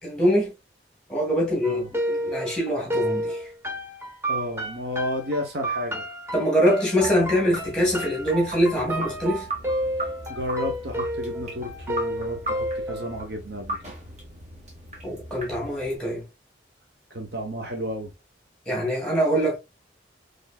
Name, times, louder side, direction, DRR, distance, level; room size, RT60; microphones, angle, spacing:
voice 1, 0.0-0.5 1.1-1.8 2.1-3.4 6.3-9.5 15.0-16.2 18.6-19.6, equal, 5° left, 1.8 m, -23 dB
sound 1, 1.6-13.2, right 1 dB, 15° right, 0.7 m, -31 dB
voice 2, 4.3-6.0 10.3-13.8 17.1-18.1, equal, 55° right, 0.8 m, -32 dB
sound 2, 7.0-16.0, right 1 dB, 40° right, 1.4 m, -37 dB
4.3 x 3.2 x 2.3 m
head